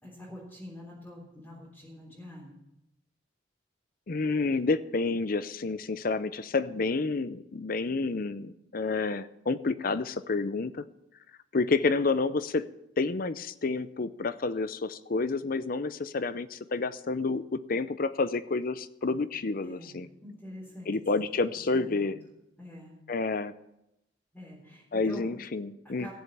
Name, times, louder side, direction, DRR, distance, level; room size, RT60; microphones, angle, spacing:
voice 1, 0.0-2.5 19.0-19.2 19.6-20.9 21.7-22.1 22.6-22.9 24.3-25.3 26.0-26.1, left 1 dB, 5° left, -9 dB, 3.6 m, -45 dB
voice 2, 4.1-10.8 11.5-12.7 13.0-20.1 20.9-22.2 23.1-23.5 24.9-26.1, left 3 dB, 50° left, 14 dB, 0.6 m, -29 dB
15.5 x 7.2 x 7.2 m, 0.89 s
head